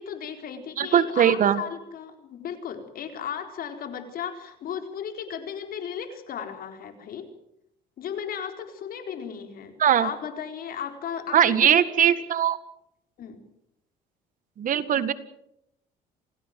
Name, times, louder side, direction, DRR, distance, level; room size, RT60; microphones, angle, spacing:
voice 1, 0.0-7.3 8.0-11.7 12.0-12.1 13.2-13.4, left 8 dB, 60° left, 7 dB, 4.3 m, -35 dB
voice 2, 0.8-1.6 9.8-10.1 11.3-12.6 14.6-15.1, right 9 dB, 50° right, 13 dB, 1.8 m, -20 dB
28.0 x 17.0 x 7.7 m, 0.78 s
cardioid pair, 110°, 17 cm